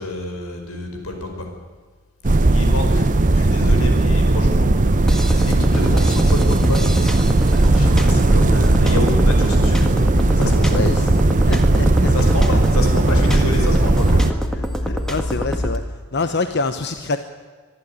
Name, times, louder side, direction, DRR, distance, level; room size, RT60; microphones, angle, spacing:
voice 1, 0.0-1.5 2.5-3.1 3.3-4.7 5.4-6.8 7.5-9.9 10.4-10.8 12.0-14.2, left 1 dB, 85° left, 3 dB, 5.3 m, -27 dB
sound 1, 2.2-14.3, right 2 dB, 35° right, 0.7 m, -16 dB
sound 2, 5.1-15.8, equal, 5° left, 1.6 m, -25 dB
voice 2, 10.7-12.1 12.5-12.6 13.8-13.9 14.8-15.8 16.1-17.2, left 3 dB, 50° left, 8 dB, 0.9 m, -25 dB
24.0 x 12.0 x 9.6 m, 1.5 s
head